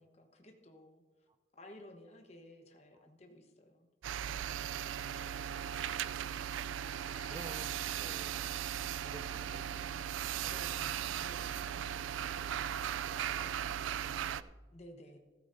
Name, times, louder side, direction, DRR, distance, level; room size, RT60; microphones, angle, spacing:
voice 1, 0.0-1.3 1.5-3.9 10.4-11.7 14.7-15.2, left 1 dB, 35° left, 3 dB, 1.1 m, -55 dB
sound 1, 4.0-14.4, right 9 dB, 90° right, 0.3 m, -38 dB
sound 2, 6.9-12.0, left 4 dB, 70° left, 1.1 m, -63 dB
voice 2, 7.3-10.0 10.3-10.9 11.7-13.8 14.0-14.6, right 1 dB, 20° right, 10 dB, 0.5 m, -55 dB
14.5 x 13.5 x 2.6 m, 1.3 s
head